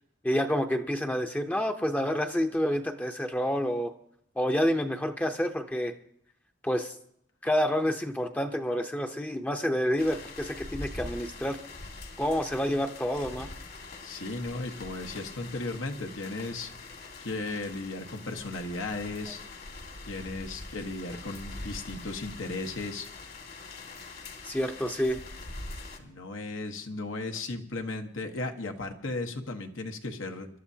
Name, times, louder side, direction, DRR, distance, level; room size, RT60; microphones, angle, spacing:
voice 1, 0.2-3.9 4.4-5.9 6.6-6.9 7.4-11.6 12.2-13.5 24.4-25.2, equal, 10° left, 4 dB, 0.7 m, -28 dB
sound 1, 10.0-26.0, left 2 dB, 55° left, 1.9 m, -43 dB
voice 2, 14.0-16.7 17.2-19.4 20.0-23.1 26.0-30.5, left 2 dB, 75° left, 4 dB, 1.3 m, -35 dB
26.0 x 12.0 x 2.8 m, 0.69 s
head